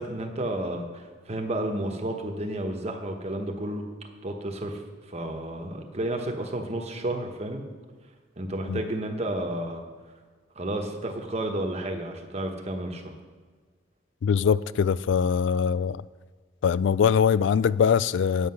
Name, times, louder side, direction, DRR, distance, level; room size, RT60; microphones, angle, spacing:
voice 1, 0.0-3.9 4.2-4.8 5.1-7.6 8.4-9.8 10.5-13.1, right 1 dB, 35° right, 3 dB, 1.1 m, -31 dB
voice 2, 14.2-16.0 16.6-18.5, left 7 dB, 65° left, 19 dB, 0.3 m, -22 dB
9.7 x 8.6 x 5.7 m, 1.5 s
head